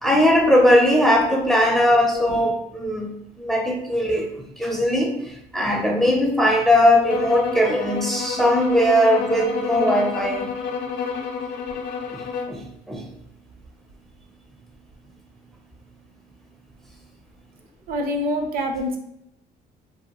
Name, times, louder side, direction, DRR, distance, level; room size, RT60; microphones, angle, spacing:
voice 1, 0.0-10.5 12.1-12.2 12.5-13.0, equal, ahead, 1 dB, 0.4 m, -19 dB
sound 1, 7.1-12.6, left 6 dB, 80° left, 0.4 m, -29 dB
voice 2, 17.9-19.0, equal, 60° right, 4 dB, 0.5 m, -25 dB
2.6 x 2.2 x 2.9 m, 0.78 s
cardioid pair, 110°, 17 cm